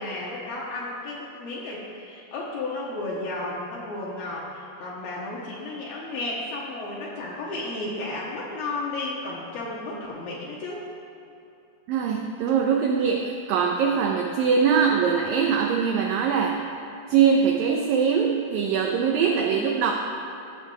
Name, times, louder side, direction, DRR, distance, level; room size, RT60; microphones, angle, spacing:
voice 1, 0.0-10.8 19.2-19.7, left 2 dB, 70° left, -6 dB, 2.7 m, -33 dB
voice 2, 11.9-16.6 17.1-19.9, right 6 dB, 90° right, 1 dB, 1.9 m, -22 dB
15.5 x 6.4 x 3.6 m, 2.7 s
omnidirectional pair, 4.8 m